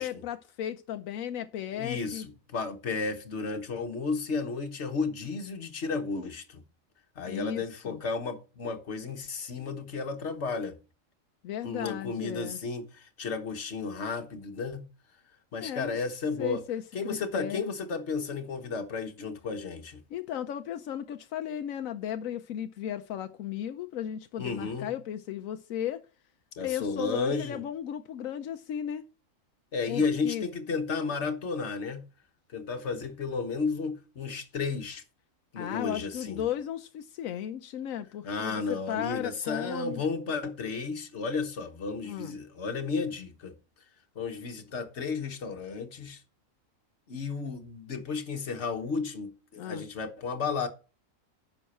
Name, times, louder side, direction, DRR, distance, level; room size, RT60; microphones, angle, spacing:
voice 1, 0.0-2.3 7.2-8.0 11.4-12.6 15.6-16.0 16.4-17.7 20.1-26.1 26.6-29.0 29.9-30.5 35.6-40.0 42.0-42.4 49.6-49.9, left 10 dB, 85° left, 1.1 m, -35 dB
voice 2, 1.7-6.6 7.2-10.8 11.6-14.9 15.5-16.6 16.9-20.0 24.4-24.9 26.6-27.6 29.7-32.0 32.5-35.0 35.5-36.4 38.2-43.5 44.1-46.2 47.1-50.7, left 4 dB, 60° left, 1.5 m, -33 dB
10.0 x 6.2 x 4.3 m
omnidirectional pair, 1.4 m